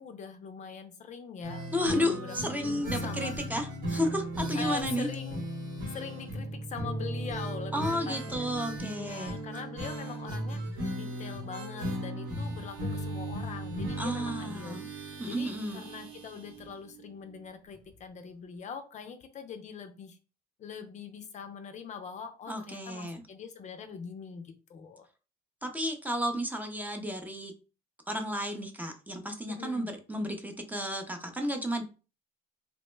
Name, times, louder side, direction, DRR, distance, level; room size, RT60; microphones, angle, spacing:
voice 1, 0.0-3.4 4.5-5.4 5.9-8.6 9.0-20.2 20.6-25.1 29.5-29.9, left 6 dB, 45° left, 8 dB, 0.4 m, -43 dB
sound 1, 1.4-17.1 17.3-17.4 17.7-17.8, right 1 dB, 85° right, 1.2 m, -37 dB
voice 2, 1.7-5.1 7.7-9.4 14.0-14.8 15.2-15.8 22.5-23.2 25.6-27.5 28.1-31.8, equal, 10° right, 5 dB, 0.5 m, -32 dB
2.9 x 2.1 x 3.1 m, 0.34 s
cardioid pair, 110°, 17 cm